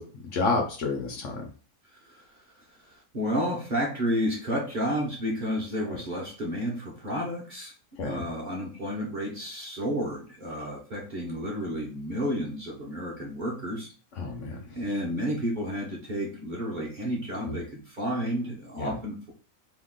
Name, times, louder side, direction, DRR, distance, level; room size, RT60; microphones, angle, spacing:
voice 1, 0.0-1.5 8.0-8.2 14.2-14.8 17.4-17.6 18.8-19.0, left 3 dB, 65° left, 2 dB, 0.9 m, -30 dB
voice 2, 2.8-7.7 8.0-13.9 14.7-19.3, equal, 40° right, -4 dB, 0.8 m, -31 dB
2.9 x 2.3 x 3.6 m, 0.38 s
omnidirectional pair, 1.5 m